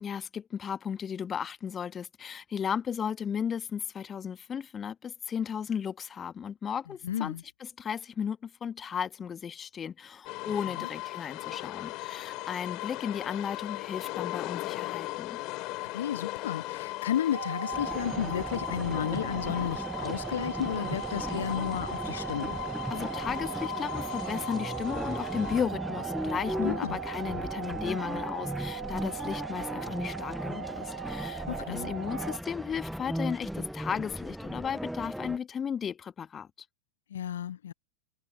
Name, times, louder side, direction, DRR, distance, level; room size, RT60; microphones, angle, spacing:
voice 1, 0.0-7.3 7.6-15.4 22.9-36.5, left 7 dB, 20° left, 1.5 m, -35 dB
voice 2, 7.0-7.4 10.8-10.9 15.8-22.6 26.6-27.0 31.5-31.9 37.1-37.7, left 10 dB, 60° left, 0.5 m, -33 dB
sound 1, 10.2-25.6, left 21 dB, 40° left, 2.4 m, -38 dB
sound 2, 17.3-32.4, right 10 dB, 65° right, 0.4 m, -39 dB
sound 3, 17.7-35.4, equal, ahead, 0.6 m, -37 dB
figure-of-eight pair, 90°, 0 cm